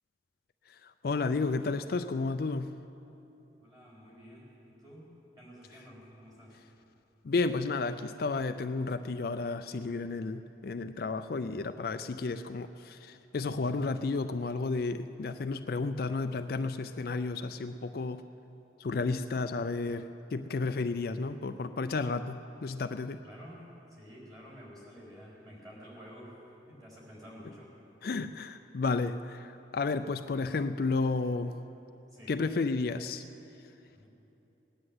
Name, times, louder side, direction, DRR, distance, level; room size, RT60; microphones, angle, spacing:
voice 1, 1.0-2.7 7.2-18.2 18.8-23.2 28.0-31.6 32.3-33.2, left 3 dB, 50° left, 9 dB, 0.4 m, -32 dB
voice 2, 3.6-5.1 5.4-6.6 23.2-27.7 32.1-32.4 33.9-34.1, equal, 20° right, -6 dB, 4.3 m, -51 dB
18.5 x 9.8 x 7.9 m, 3.0 s
head